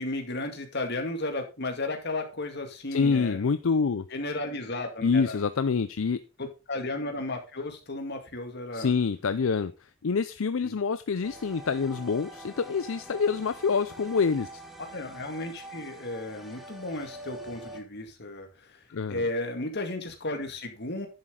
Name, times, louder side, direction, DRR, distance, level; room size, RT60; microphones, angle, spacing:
voice 1, 0.0-3.4 4.1-5.5 6.4-8.9 10.6-10.8 14.9-21.1, left 2 dB, 50° left, 5 dB, 2.1 m, -34 dB
voice 2, 2.9-4.0 5.0-6.2 8.7-9.7 10.0-14.5 18.9-19.2, left 5 dB, 70° left, 12 dB, 0.5 m, -26 dB
sound 1, 11.2-17.8, right 1 dB, ahead, 1.4 m, -45 dB
10.5 x 7.6 x 3.8 m, 0.28 s
head